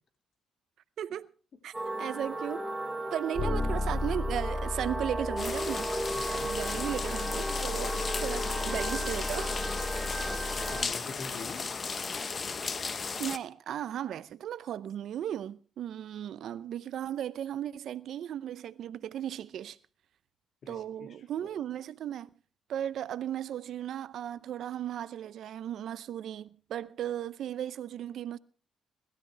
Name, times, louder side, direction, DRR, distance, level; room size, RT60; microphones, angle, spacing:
voice 1, 1.0-1.3 1.6-2.7 3.1-5.9 6.3-9.5 13.2-19.8 20.7-22.3 22.7-28.4, right 10 dB, 70° right, 0.6 m, -36 dB
sound 1, 1.7-10.8, right 1 dB, 5° right, 3.9 m, -36 dB
sound 2, 3.3-10.9, left 2 dB, 20° left, 1.6 m, -35 dB
sound 3, 5.4-13.4, left 5 dB, 40° left, 1.0 m, -35 dB
voice 2, 6.1-6.8 10.3-11.7 20.6-21.1 21.4-21.5, left 4 dB, 55° left, 2.3 m, -46 dB
22.0 x 13.0 x 3.4 m
cardioid pair, 90°, 0 cm